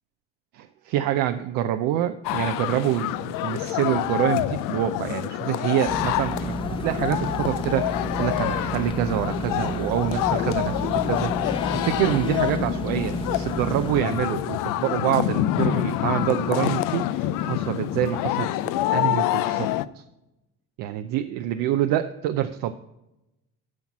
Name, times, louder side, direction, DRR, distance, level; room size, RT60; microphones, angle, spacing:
voice 1, 0.6-11.6 11.8-20.0 20.8-22.7, right 12 dB, 80° right, 8 dB, 0.6 m, -26 dB
sound 1, 2.2-19.9, left 14 dB, 75° left, 0.5 m, -27 dB
sound 2, 5.8-14.0, equal, 15° left, 0.9 m, -31 dB
9.5 x 5.9 x 6.0 m, 0.93 s
supercardioid pair, 80°, 33 cm